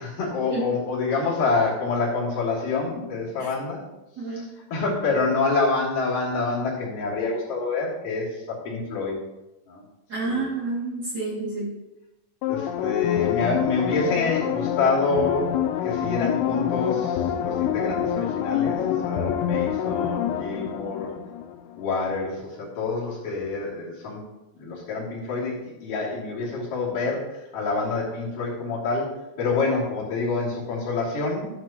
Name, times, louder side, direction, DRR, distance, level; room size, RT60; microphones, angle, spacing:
voice 1, 0.0-3.8 4.3-4.5 4.7-9.2 9.7-9.8 10.3-10.5 12.5-21.1 21.8-24.2 24.6-31.5, left 4 dB, 45° left, -6 dB, 3.7 m, -27 dB
voice 2, 10.1-11.7, right 3 dB, 45° right, -6 dB, 1.3 m, -29 dB
sound 1, 12.4-21.8 22.2-22.3, left 9 dB, 85° left, 3.1 m, -26 dB
11.5 x 9.5 x 2.9 m, 0.95 s
omnidirectional pair, 6.0 m